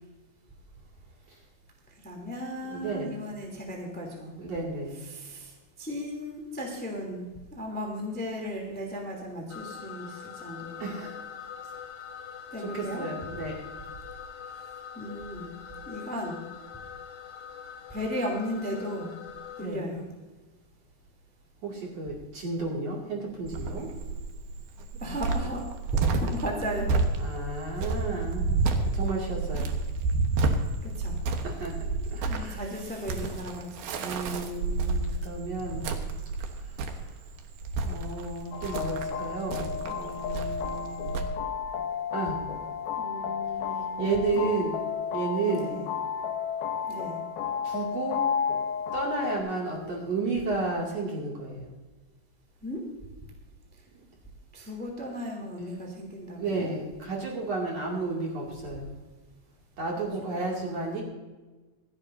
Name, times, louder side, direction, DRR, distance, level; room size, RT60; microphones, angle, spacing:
voice 1, 2.0-4.3 5.1-5.5 5.8-7.2 7.5-10.8 12.5-13.1 14.9-15.5 15.9-16.4 17.9-19.2 19.6-20.0 25.0-27.0 27.8-27.9 30.8-31.5 32.2-33.8 43.0-44.0 44.3-44.5 45.5-45.8 46.9-47.2 52.6-52.8 54.5-56.7 60.0-60.1 60.4-61.0, equal, 5° left, -1 dB, 2.3 m, -35 dB
voice 2, 2.7-3.2 4.4-5.0 10.8-11.2 12.6-13.6 19.6-19.8 21.6-23.9 27.2-29.7 31.4-31.7 32.1-32.6 34.0-35.9 36.5-36.7 37.0-37.1 37.8-41.3 42.1-42.4 44.0-44.8 45.1-45.8 47.6-48.3 48.9-51.7 56.4-59.0 59.8-61.0, right 3 dB, 45° right, -3 dB, 3.4 m, -32 dB
sound 1, 9.5-19.7, left 8 dB, 65° left, 1.6 m, -43 dB
Cricket, 23.5-41.2, right 3 dB, 75° right, 3.0 m, -30 dB
sound 2, 38.5-49.4, left 7 dB, 85° left, 2.9 m, -32 dB
27.0 x 9.7 x 2.7 m, 1.2 s
omnidirectional pair, 4.4 m